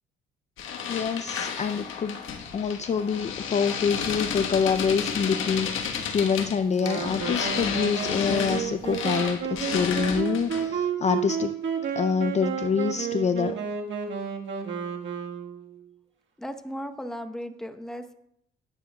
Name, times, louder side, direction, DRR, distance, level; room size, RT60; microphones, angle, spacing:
sound 1, 0.6-10.8, left 7 dB, 80° left, 1.3 m, -32 dB
voice 1, 0.9-2.2 2.5-11.5 12.0-13.5, left 6 dB, 35° left, 10 dB, 0.4 m, -26 dB
Wind instrument woodwind instrument, 6.8-15.8, right 7 dB, 65° right, 1.5 m, -31 dB
voice 2, 16.4-18.1, equal, 5° left, 5 dB, 0.9 m, -36 dB
17.5 x 9.1 x 2.3 m, 0.75 s
cardioid pair, 90°, 20 cm